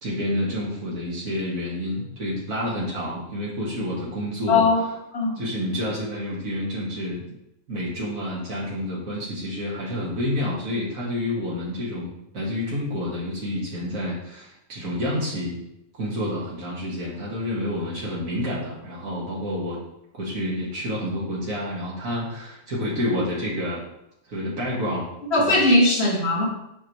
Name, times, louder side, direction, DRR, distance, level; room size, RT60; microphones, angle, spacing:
voice 1, 0.0-4.7 5.4-7.3 7.7-15.6 16.0-19.8 20.1-23.8 24.3-25.1 25.4-25.7, left 1 dB, 85° right, -6 dB, 2.1 m, -29 dB
voice 2, 4.5-4.8 5.1-5.4 25.3-26.5, left 2 dB, 50° left, -2 dB, 1.8 m, -19 dB
8.5 x 4.9 x 3.1 m, 0.82 s
omnidirectional pair, 1.4 m